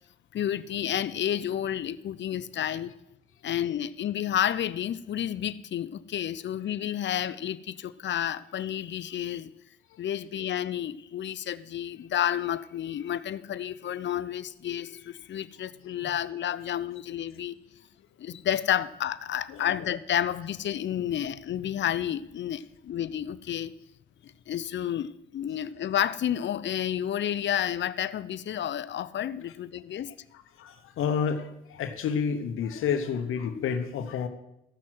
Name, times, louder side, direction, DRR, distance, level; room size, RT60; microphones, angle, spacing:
voice 1, 0.3-2.9 3.4-9.5 10.0-17.6 18.2-23.7 24.2-30.1, left 10 dB, 60° left, 16 dB, 0.7 m, -30 dB
voice 2, 19.5-19.8 29.9-30.0 30.3-34.3, left 6 dB, 80° left, 8 dB, 1.1 m, -30 dB
15.0 x 6.2 x 7.7 m, 0.86 s
supercardioid pair, 65°, 21 cm